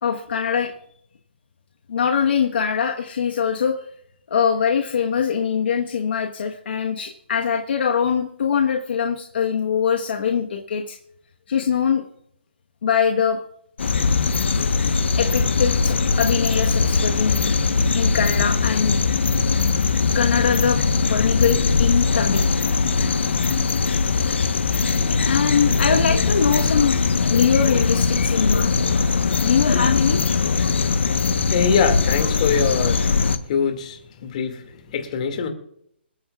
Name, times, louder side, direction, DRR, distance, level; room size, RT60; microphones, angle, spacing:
voice 1, 0.0-0.7 1.9-3.8 4.3-11.0 11.5-12.0 12.8-13.4 15.2-17.5 17.9-19.0 20.1-20.8 21.1-22.5 25.2-26.9 27.3-28.7 29.4-30.2, left 7 dB, 65° left, 2 dB, 1.3 m, -22 dB
sound 1, 13.8-33.4, left 4 dB, 80° left, 1.1 m, -20 dB
voice 2, 31.5-33.2 33.5-35.5, left 6 dB, 40° left, 5 dB, 2.2 m, -23 dB
27.5 x 9.2 x 2.4 m, 0.71 s
hypercardioid pair, 160°, 6 cm